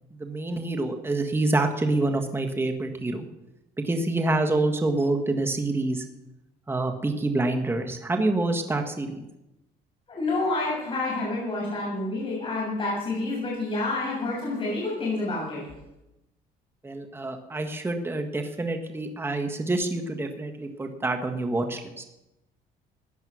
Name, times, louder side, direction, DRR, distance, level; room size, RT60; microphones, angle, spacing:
voice 1, 0.2-3.3 3.8-6.0 6.7-9.3 16.8-22.0, right 2 dB, 15° right, 4 dB, 1.6 m, -27 dB
voice 2, 10.1-15.6, left 2 dB, 30° left, -4 dB, 7.0 m, -28 dB
15.5 x 10.0 x 6.3 m, 0.94 s
cardioid pair, 110°, 17 cm